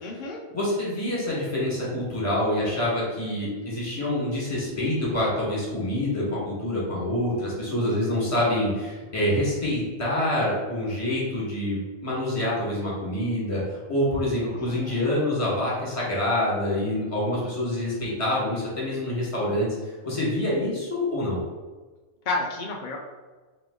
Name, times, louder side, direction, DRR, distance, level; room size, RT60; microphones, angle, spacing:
voice 1, 0.0-0.4 14.5-15.1 22.3-23.0, left 3 dB, 80° left, 0 dB, 0.4 m, -31 dB
voice 2, 0.5-19.7 20.0-21.4, left 1 dB, 25° left, -6 dB, 1.4 m, -26 dB
3.5 x 3.0 x 3.7 m, 1.3 s
omnidirectional pair, 1.4 m